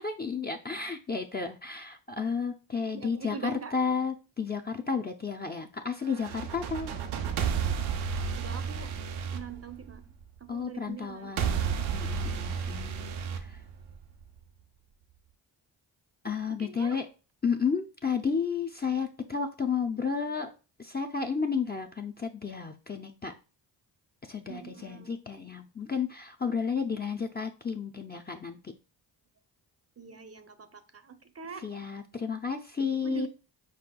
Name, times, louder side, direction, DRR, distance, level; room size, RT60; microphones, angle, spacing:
voice 1, 0.0-6.9 10.5-13.6 16.2-17.1 17.4-20.5 20.8-23.3 24.3-28.6 31.6-33.3, left 5 dB, 20° left, 0.5 m, -32 dB
voice 2, 2.9-3.8 8.4-9.0 9.3-10.0 10.4-11.4 16.6-17.0 24.5-25.1 30.0-31.7 33.0-33.3, right 7 dB, 30° right, 0.7 m, -42 dB
sound 1, 6.1-10.2 11.4-14.2, right 6 dB, 85° right, 0.6 m, -32 dB
4.6 x 4.3 x 2.2 m
supercardioid pair, 50°, 47 cm